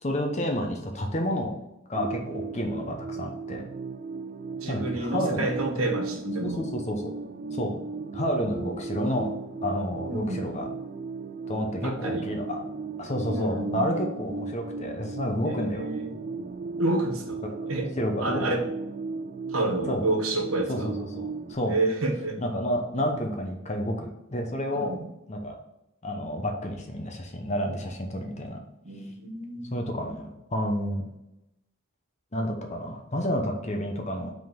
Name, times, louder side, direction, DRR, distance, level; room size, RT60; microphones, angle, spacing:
voice 1, 0.0-1.6 1.9-3.6 4.7-5.5 6.3-7.1 7.5-7.7 8.1-9.3 9.6-10.7 11.5-12.6 13.0-15.9 17.6-17.7 18.0-18.4 19.9-20.0 20.7-21.7 22.4-24.9 25.3-25.6 26.0-28.6 29.7-31.1 32.3-34.3, equal, 35° left, 3 dB, 0.8 m, -30 dB
sound 1, 1.9-21.6, right 4 dB, 35° right, 0.4 m, -36 dB
voice 2, 4.6-6.7 10.1-10.5 11.8-12.3 13.3-14.0 15.4-16.1 16.8-17.9 18.2-18.6 19.5-20.9 21.7-22.4 24.7-25.1 28.8-29.8, right 2 dB, 90° right, 3 dB, 1.3 m, -29 dB
5.6 x 3.8 x 5.2 m, 0.89 s
head